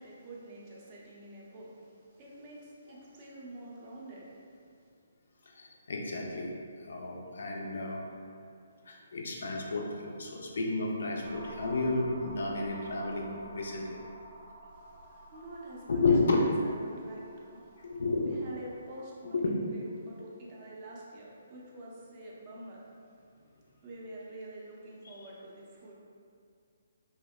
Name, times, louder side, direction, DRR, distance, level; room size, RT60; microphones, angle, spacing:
voice 1, 0.0-4.5 14.7-16.0 16.4-17.9 18.2-22.9 23.8-25.9, right 1 dB, 35° right, -5 dB, 0.5 m, -47 dB
voice 2, 5.6-6.5 6.9-8.0 8.9-13.9 15.9-16.5 17.8-18.5 19.2-19.5 25.2-25.3, left 3 dB, 60° left, -1 dB, 0.3 m, -31 dB
sound 1, 11.2-18.8, right 1 dB, 80° right, 0.8 m, -50 dB
2.7 x 2.0 x 2.2 m, 2.3 s
figure-of-eight pair, 135°, 0 cm